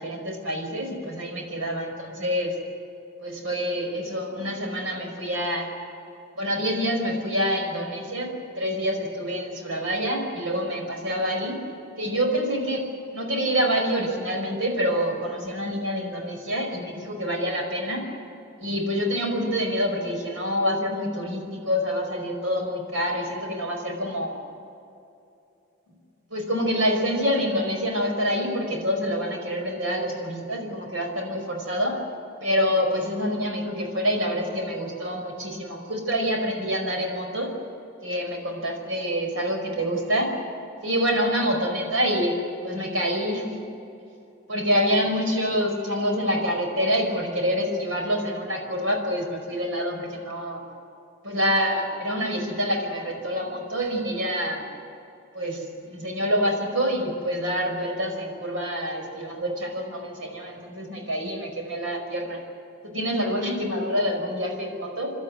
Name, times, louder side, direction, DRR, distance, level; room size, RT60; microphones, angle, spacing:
voice 1, 0.0-2.5 3.2-5.7 6.4-11.6 12.0-12.8 13.1-18.0 18.6-24.3 26.3-32.0 32.4-37.5 38.0-40.3 40.8-42.3 42.6-43.6 44.5-50.6 51.2-54.7 55.3-62.4 62.8-65.1, equal, 85° right, 2 dB, 5.2 m, -26 dB
29.5 x 12.5 x 9.9 m, 2.7 s
head